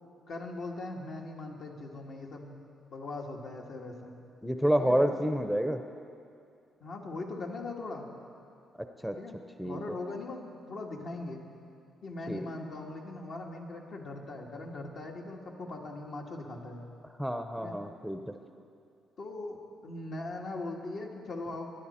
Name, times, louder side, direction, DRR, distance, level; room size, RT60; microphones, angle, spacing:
voice 1, 0.3-2.5 2.9-4.2 4.8-5.0 6.8-8.1 9.2-9.4 9.6-11.4 12.0-16.8 17.6-17.8 19.2-19.6 19.8-21.7, left 2 dB, 65° left, 0 dB, 1.7 m, -40 dB
voice 2, 4.4-5.8 9.0-9.1 9.6-9.8 12.3-12.5 17.2-18.2, equal, ahead, 6 dB, 0.6 m, -28 dB
19.5 x 10.5 x 4.3 m, 2.4 s
cardioid pair, 90°, 0 cm